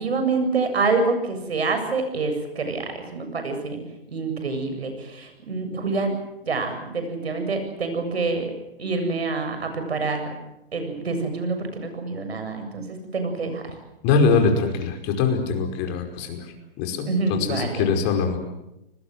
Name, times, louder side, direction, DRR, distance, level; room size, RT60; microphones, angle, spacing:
voice 1, 0.0-3.8 4.1-6.1 6.5-8.5 8.8-10.2 10.7-12.8 13.1-13.7 17.1-17.9, right 3 dB, 85° right, 7 dB, 7.5 m, -26 dB
voice 2, 14.0-18.4, left 5 dB, 35° left, 5 dB, 5.2 m, -23 dB
29.5 x 20.5 x 7.8 m, 0.90 s
hypercardioid pair, 135°, 30 cm